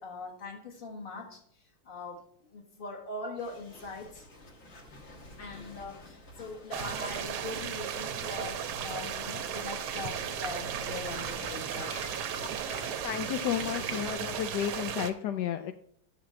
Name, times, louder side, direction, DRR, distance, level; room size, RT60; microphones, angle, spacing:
voice 1, 0.0-4.3 5.4-12.0, left 3 dB, 30° left, 2 dB, 1.4 m, -42 dB
sound 1, 3.4-14.1, left 1 dB, 45° left, 1.4 m, -48 dB
sound 2, 6.7-15.1, right 8 dB, 80° right, 1.7 m, -35 dB
voice 2, 13.0-15.7, left 10 dB, 80° left, 8 dB, 0.9 m, -32 dB
10.0 x 7.0 x 4.4 m, 0.66 s
omnidirectional pair, 2.4 m